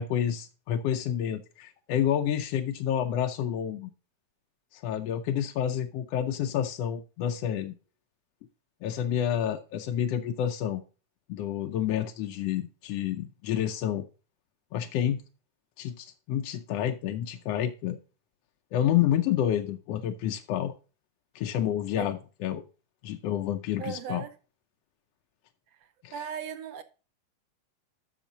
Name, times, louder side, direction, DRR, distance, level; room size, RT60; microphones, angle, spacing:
voice 1, 0.0-3.9 4.7-7.7 8.8-10.8 11.3-14.1 14.7-15.2 15.8-18.0 18.7-20.7 21.3-22.6 23.0-24.2 26.0-26.2, left 10 dB, 70° left, 1.6 m, -29 dB
voice 2, 23.8-24.4 26.1-26.8, right 7 dB, 75° right, 1.6 m, -37 dB
10.5 x 6.6 x 4.0 m
omnidirectional pair, 3.4 m